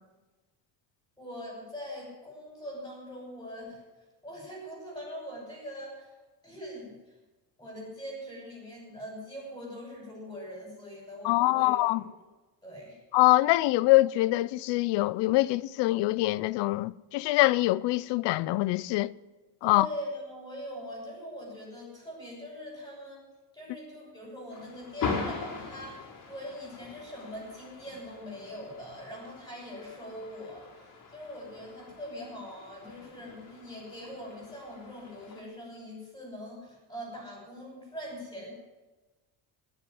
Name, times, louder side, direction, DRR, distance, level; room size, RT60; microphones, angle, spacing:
voice 1, 1.2-3.8 4.2-6.1 6.4-7.0 7.6-12.0 12.6-13.0 19.6-23.2 23.5-38.5, equal, 10° left, 6.2 m, -42 dB
voice 2, 11.2-12.0 13.1-19.1 19.6-19.9, left 19 dB, 70° left, 0.6 m, -24 dB
sound 1, 24.5-35.4, left 4 dB, 50° left, 4.0 m, -41 dB
18.0 x 7.3 x 9.5 m
cardioid pair, 170°, 43 cm